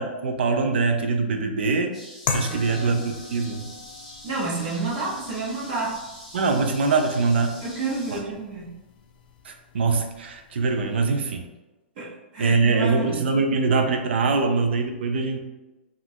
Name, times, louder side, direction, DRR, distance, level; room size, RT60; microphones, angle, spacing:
voice 1, 0.0-2.0 2.3-3.7 6.3-7.6 8.1-8.2 9.4-11.5 12.4-15.4, right 4 dB, 75° right, 5 dB, 0.5 m, -23 dB
sound 1, 1.9-8.2, equal, ahead, 0.8 m, -44 dB
sound 2, 2.3-11.1, left 5 dB, 55° left, 0.4 m, -38 dB
voice 2, 2.3-3.0 4.2-6.0 7.6-8.7 12.0-13.4, right 3 dB, 50° right, -4 dB, 1.0 m, -30 dB
2.9 x 2.5 x 2.7 m, 1.1 s
hypercardioid pair, 130°, 6 cm